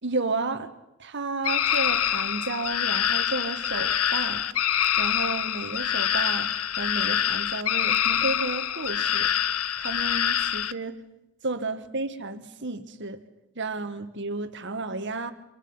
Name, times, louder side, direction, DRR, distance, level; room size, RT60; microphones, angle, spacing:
voice 1, 0.0-0.7 1.0-4.5 5.0-9.3 9.8-11.0 11.4-13.2 13.6-15.3, right 3 dB, 55° right, 1.7 m, -32 dB
sound 1, 1.4-10.7, left 10 dB, 80° left, 0.8 m, -25 dB
27.5 x 26.5 x 5.7 m
head